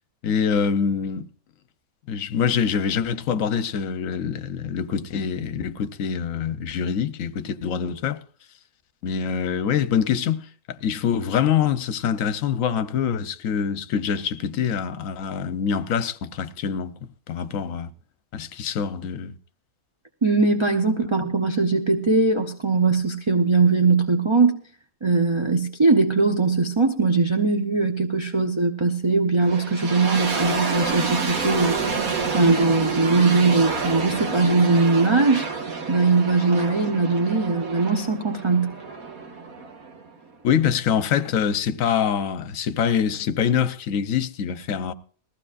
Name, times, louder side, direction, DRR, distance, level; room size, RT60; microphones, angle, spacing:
voice 1, 0.2-1.3 2.1-8.2 9.0-16.9 17.3-17.9 18.3-19.3 40.4-44.9, left 7 dB, 70° left, 1.1 m, -25 dB
voice 2, 20.2-24.6 25.0-32.0 32.3-35.5 35.9-38.7, right 3 dB, 25° right, 0.6 m, -20 dB
sound 1, 29.4-40.3, right 4 dB, 85° right, 2.0 m, -29 dB
20.0 x 15.0 x 2.5 m
omnidirectional pair, 1.5 m